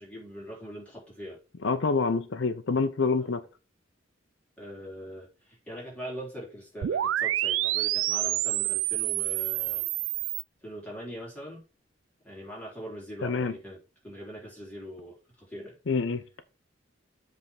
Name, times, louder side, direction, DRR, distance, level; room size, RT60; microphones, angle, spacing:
voice 1, 0.0-1.4 3.2-3.3 4.6-9.9 10.6-11.6 12.2-13.8 14.0-15.8, equal, 5° left, -5 dB, 3.6 m, -42 dB
voice 2, 1.6-3.4 13.2-13.5 15.9-16.4, left 4 dB, 70° left, 10 dB, 0.6 m, -27 dB
sound 1, 6.8-10.4, right 15 dB, 80° right, 0.3 m, -28 dB
7.7 x 3.6 x 5.8 m, 0.31 s
head